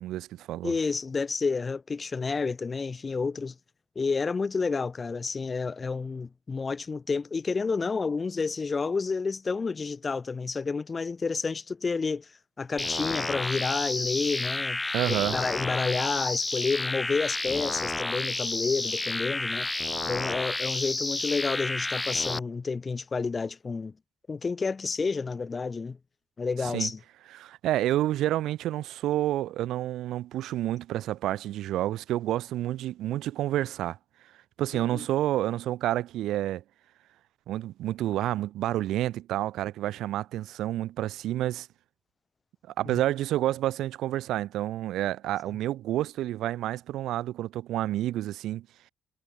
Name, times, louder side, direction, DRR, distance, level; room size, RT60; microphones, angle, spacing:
voice 1, 0.0-0.7 14.9-15.4 26.6-26.9 27.3-34.0 34.6-36.6 37.5-41.7 42.8-48.7, right 14 dB, 85° right, 1.4 m, -29 dB
voice 2, 0.6-3.5 4.0-12.3 12.6-14.8 15.1-19.7 20.0-23.9 24.3-26.0 26.4-27.0 34.9-35.0 42.8-43.0, left 4 dB, 35° left, 2.7 m, -30 dB
sound 1, 12.8-22.4, left 2 dB, 15° left, 4.0 m, -31 dB
cardioid pair, 90°, 0 cm